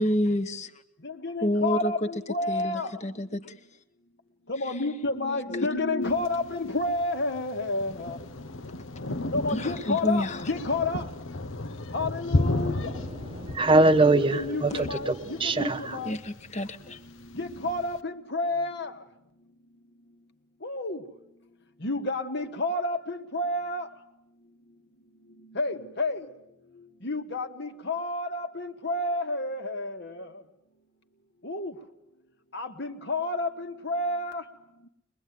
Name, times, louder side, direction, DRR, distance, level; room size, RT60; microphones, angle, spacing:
voice 1, 0.0-0.7 1.4-3.4 4.6-5.1 5.3-5.7 9.5-10.6 14.7-14.9 16.0-17.0, equal, 35° left, 1.2 m, -30 dB
voice 2, 1.0-2.9 4.5-8.2 9.3-11.0 11.9-12.9 14.1-16.2 17.3-18.9 20.6-21.0 21.8-23.9 25.5-26.3 27.0-30.3 31.4-31.7 32.5-34.4, left 2 dB, 60° left, 1.8 m, -30 dB
Thunder, 6.0-18.0, left 2 dB, 80° left, 1.1 m, -34 dB
voice 3, 12.6-16.2, right 2 dB, 25° right, 1.0 m, -24 dB
23.0 x 22.0 x 9.4 m
head